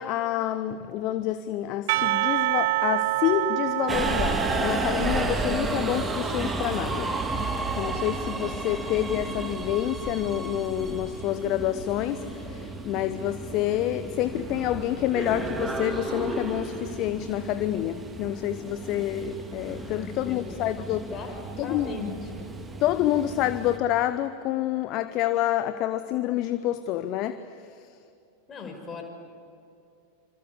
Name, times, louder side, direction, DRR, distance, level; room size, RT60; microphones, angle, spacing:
voice 1, 0.0-7.2 7.8-21.0 21.6-21.9 22.8-27.8, left 12 dB, 40° left, 0.9 m, -28 dB
Percussion / Church bell, 1.9-6.9, right 18 dB, 50° right, 0.5 m, -28 dB
Subway metro underground, 3.9-23.8, right 2 dB, 15° right, 2.6 m, -32 dB
voice 2, 19.9-20.5 21.0-21.4 21.6-22.5 28.5-29.0, left 4 dB, 20° left, 5.4 m, -38 dB
27.0 x 25.5 x 8.2 m
figure-of-eight pair, 90°, 0 cm